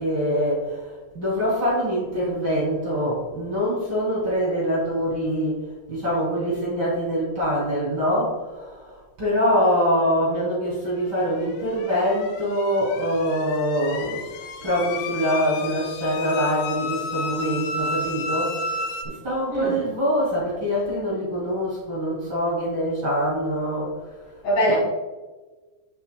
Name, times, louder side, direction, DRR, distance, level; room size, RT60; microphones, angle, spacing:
voice 1, 0.0-5.6 5.9-23.9 24.7-24.8, equal, 30° right, -7 dB, 2.8 m, -24 dB
sound 1, 11.5-19.0, left 3 dB, 85° left, 3.0 m, -32 dB
voice 2, 19.5-19.9 24.4-24.8, equal, 65° left, -4 dB, 4.7 m, -23 dB
10.5 x 7.6 x 2.2 m, 1.3 s
omnidirectional pair, 5.3 m